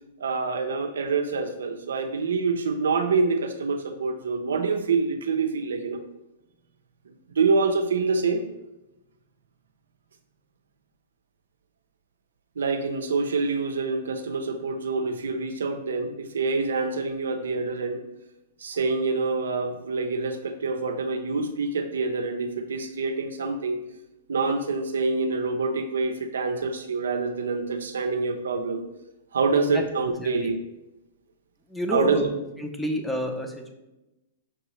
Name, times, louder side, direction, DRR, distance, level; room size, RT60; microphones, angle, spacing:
voice 1, 0.2-6.0 7.3-8.4 12.6-18.0 18.6-23.8 24.3-28.8 29.3-30.6 31.9-32.2, right 4 dB, 85° right, 6 dB, 0.5 m, -26 dB
voice 2, 30.2-30.5 31.7-32.3 32.6-33.7, equal, 5° left, 3 dB, 0.6 m, -29 dB
5.8 x 2.7 x 3.1 m, 0.97 s
hypercardioid pair, 135°, 0 cm